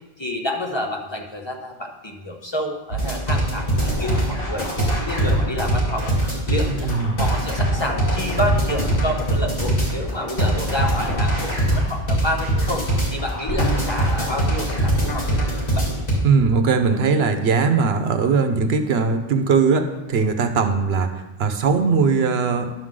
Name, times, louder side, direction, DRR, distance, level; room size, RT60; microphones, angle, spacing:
voice 1, 0.2-4.7 5.0-6.1 6.5-6.9 7.2-12.8 13.1-15.9, left 1 dB, 30° left, 1 dB, 0.7 m, -29 dB
sound 1, 2.9-16.2, right 1 dB, 60° left, 2.7 m, -22 dB
voice 2, 6.8-7.2 16.2-22.7, right 5 dB, 80° right, 7 dB, 1.0 m, -20 dB
10.5 x 6.3 x 3.7 m, 1.1 s
omnidirectional pair, 1.0 m